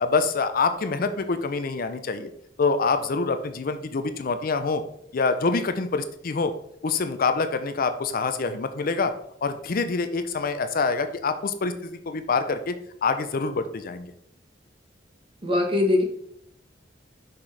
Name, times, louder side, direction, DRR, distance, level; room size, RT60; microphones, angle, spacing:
voice 1, 0.0-2.3 2.6-4.8 5.1-6.5 6.8-9.1 9.4-12.7 13.0-14.1, left 4 dB, 50° left, 10 dB, 0.5 m, -26 dB
voice 2, 15.4-16.0, left 2 dB, 30° right, 3 dB, 1.2 m, -21 dB
6.1 x 5.8 x 3.3 m, 0.70 s
head